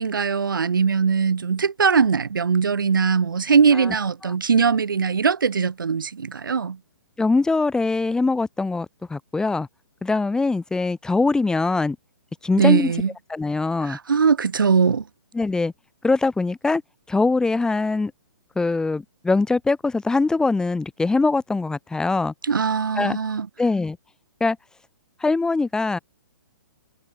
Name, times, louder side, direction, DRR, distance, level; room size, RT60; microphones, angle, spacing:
voice 1, 0.0-6.8 12.6-13.1 13.8-15.0 22.5-23.5, right 6 dB, 75° right, 5.2 m, -20 dB
voice 2, 7.2-9.7 10.0-12.0 12.4-12.9 13.3-14.0 15.3-15.7 16.0-16.8 17.1-18.1 18.6-22.3 23.0-23.2 23.6-24.0 24.4-24.6 25.2-26.0, left 3 dB, 5° left, 7.3 m, -22 dB
hypercardioid pair, 130°, 11 cm